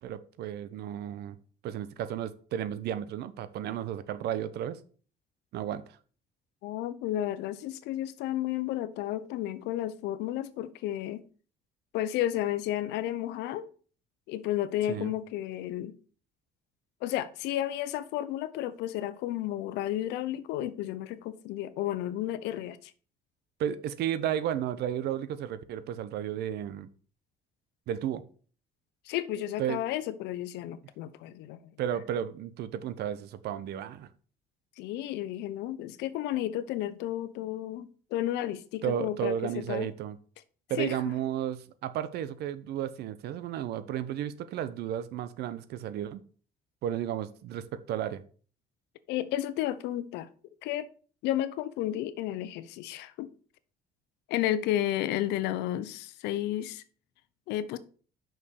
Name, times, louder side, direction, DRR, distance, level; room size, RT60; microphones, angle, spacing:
voice 1, 0.0-1.4 1.6-4.8 5.5-5.8 14.9-15.1 23.6-26.9 27.9-28.2 29.6-29.8 31.8-34.1 38.8-40.2 40.7-46.2 46.8-48.2, right 10 dB, 75° right, 0.9 m, -33 dB
voice 2, 6.6-11.2 11.9-13.7 14.3-15.9 17.0-22.9 29.1-31.6 34.8-39.9 40.8-41.0 49.1-50.3 50.6-50.9 51.2-53.3 54.3-56.8 57.5-57.8, left 13 dB, 90° left, 0.8 m, -32 dB
6.1 x 5.6 x 6.8 m
cardioid pair, 110°, 17 cm